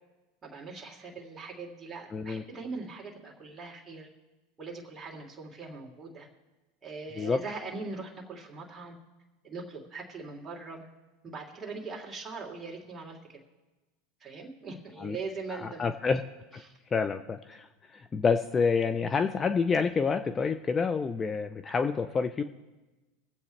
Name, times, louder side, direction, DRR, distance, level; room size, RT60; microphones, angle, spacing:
voice 1, 0.4-4.1 4.6-6.3 6.8-9.0 9.4-10.9 11.2-13.4 14.2-15.9 16.6-16.7, right 4 dB, 25° right, 0 dB, 2.9 m, -41 dB
voice 2, 2.1-2.4 7.2-7.4 15.0-15.2 15.6-16.2 16.5-16.6 16.9-22.4, left 5 dB, 25° left, 10 dB, 0.6 m, -28 dB
24.0 x 8.2 x 3.3 m, 1.1 s
hypercardioid pair, 105°, 0 cm